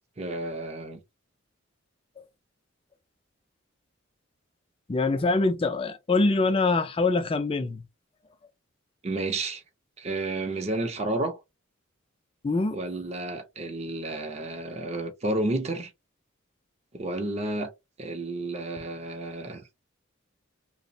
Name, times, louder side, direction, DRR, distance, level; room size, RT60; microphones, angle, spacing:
voice 1, 0.2-1.0 9.0-9.6 10.0-11.4 12.7-15.9 16.9-17.7 18.0-19.7, right 2 dB, 30° right, 0.5 m, -31 dB
voice 2, 4.9-7.9 12.4-12.7, left 3 dB, 25° left, 0.3 m, -24 dB
3.0 x 2.0 x 2.6 m
head